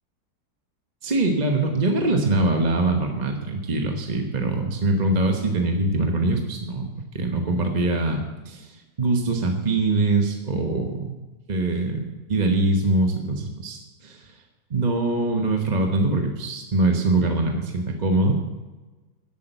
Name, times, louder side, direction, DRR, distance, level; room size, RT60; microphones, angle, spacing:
voice 1, 1.0-11.2 11.5-14.3 14.7-18.3, right 2 dB, 30° right, 3 dB, 1.1 m, -23 dB
11.5 x 8.4 x 7.9 m, 1.2 s
omnidirectional pair, 1.8 m